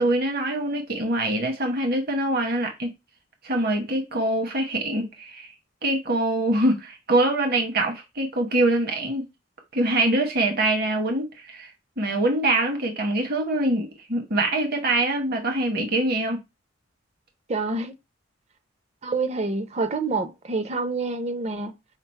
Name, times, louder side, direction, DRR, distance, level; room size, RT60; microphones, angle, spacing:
voice 1, 0.0-2.9 3.4-5.5 5.8-9.2 9.7-16.4, right 1 dB, 50° right, 1.0 m, -24 dB
voice 2, 17.5-17.9 19.0-21.7, right 3 dB, 35° right, 0.6 m, -27 dB
5.7 x 2.0 x 4.4 m
head